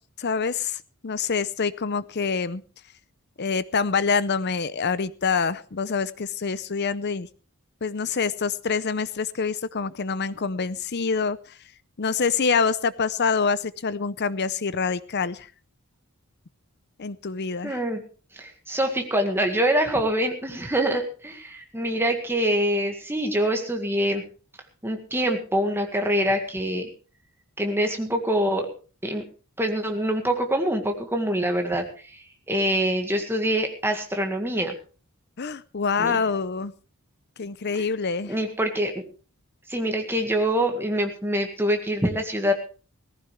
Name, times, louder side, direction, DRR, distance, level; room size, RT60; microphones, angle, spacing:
voice 1, 0.2-2.6 3.4-7.3 7.8-11.6 12.0-15.5 17.0-17.8 35.4-36.7 37.4-38.3, left 5 dB, 50° left, 16 dB, 0.6 m, -26 dB
voice 2, 17.6-18.0 18.3-24.2 24.8-26.9 27.6-28.7 29.0-29.2 29.6-34.8 36.0-36.2 38.3-38.9 39.7-42.5, right 1 dB, 10° right, 4 dB, 1.8 m, -25 dB
18.0 x 15.0 x 3.3 m, 0.37 s
head